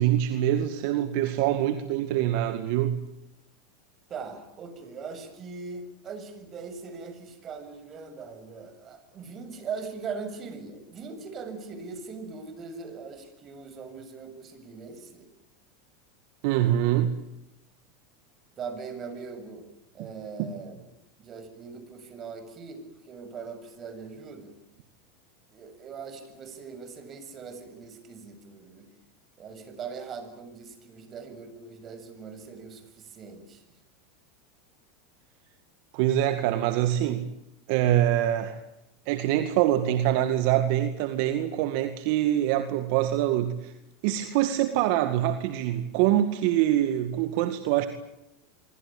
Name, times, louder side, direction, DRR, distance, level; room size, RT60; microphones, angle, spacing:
voice 1, 0.0-3.0 16.4-17.1 20.4-20.5 35.9-37.3 37.7-38.6 39.1-43.7 44.0-47.9, right 12 dB, 60° right, 9 dB, 2.1 m, -24 dB
voice 2, 4.1-15.3 18.6-19.7 19.9-20.8 21.2-24.5 25.5-28.9 29.4-33.6, right 5 dB, 35° right, 10 dB, 7.2 m, -40 dB
26.0 x 24.5 x 9.0 m, 0.88 s
hypercardioid pair, 95°, 0 cm